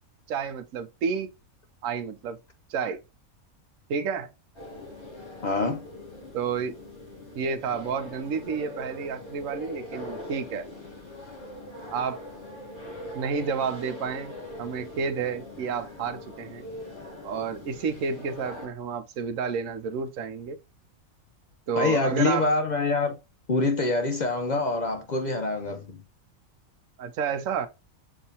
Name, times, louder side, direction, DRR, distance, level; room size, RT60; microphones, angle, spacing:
voice 1, 0.3-1.3 1.8-2.4 2.7-3.0 3.9-4.3 6.3-6.8 7.3-10.7 11.9-12.2 13.1-14.3 14.6-16.7 17.2-20.6 21.7-22.5 27.0-27.7, right 6 dB, 75° right, 1.0 m, -30 dB
sound 1, 4.5-18.7, left 1 dB, 20° left, 1.5 m, -42 dB
voice 2, 5.4-5.9 21.8-23.2 23.5-26.0, left 3 dB, 65° left, 0.4 m, -25 dB
6.8 x 2.7 x 2.8 m
omnidirectional pair, 1.5 m